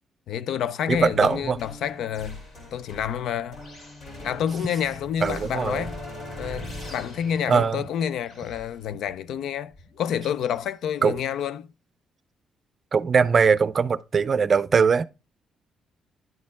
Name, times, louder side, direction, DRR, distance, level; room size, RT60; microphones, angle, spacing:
voice 1, 0.3-2.4 2.7-3.6 4.2-6.0 6.4-11.7, left 9 dB, 75° left, 0.4 m, -28 dB
sound 1, 0.9-10.6, left 1 dB, 60° left, 3.0 m, -41 dB
voice 2, 0.9-1.6 5.2-5.8 7.5-7.8 11.0-11.2 12.9-15.0, right 5 dB, 40° right, 0.5 m, -21 dB
10.5 x 4.3 x 3.5 m
cardioid pair, 90°, 0 cm